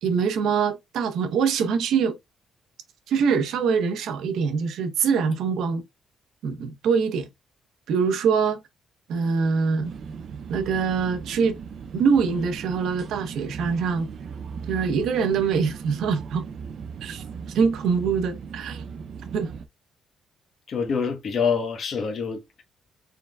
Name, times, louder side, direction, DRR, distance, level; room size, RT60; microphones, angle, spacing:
voice 1, 0.0-2.2 3.1-5.8 6.4-7.3 7.9-8.6 9.1-9.9 10.5-11.6 11.9-14.1 14.7-16.4 17.0-18.8 19.3-19.5, right 6 dB, 80° right, 0.9 m, -24 dB
sound 1, 9.8-19.7, right 6 dB, 60° right, 0.5 m, -38 dB
voice 2, 20.7-22.6, left 6 dB, 55° left, 1.1 m, -26 dB
4.7 x 3.8 x 2.3 m
cardioid pair, 90°, 0 cm